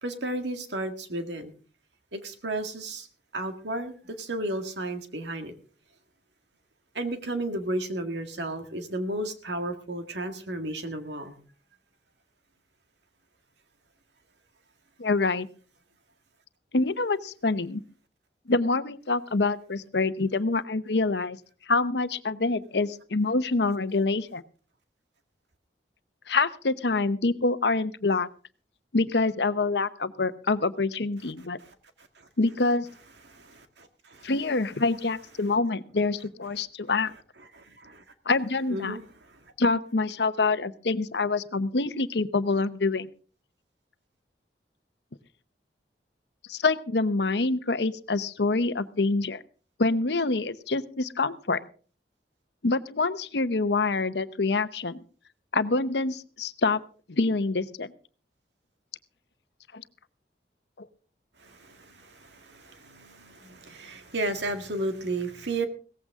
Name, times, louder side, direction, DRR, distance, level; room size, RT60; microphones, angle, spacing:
voice 1, 0.0-1.5 2.1-3.1 3.3-5.5 6.9-11.4 31.6-31.7 32.2-32.3 33.3-34.3 37.5-38.0 38.7-39.0 61.4-65.7, right 1 dB, 85° right, 7 dB, 1.9 m, -33 dB
voice 2, 15.0-15.5 16.7-17.8 18.5-21.4 21.7-24.4 26.3-28.3 28.9-31.6 32.4-32.9 34.2-37.1 38.3-39.0 39.6-43.1 46.5-49.4 49.8-51.6 52.6-55.0 55.5-56.8 57.1-57.9 59.7-59.8 60.8-60.9, left 3 dB, 75° left, 13 dB, 0.9 m, -26 dB
17.5 x 14.5 x 3.7 m, 0.41 s
head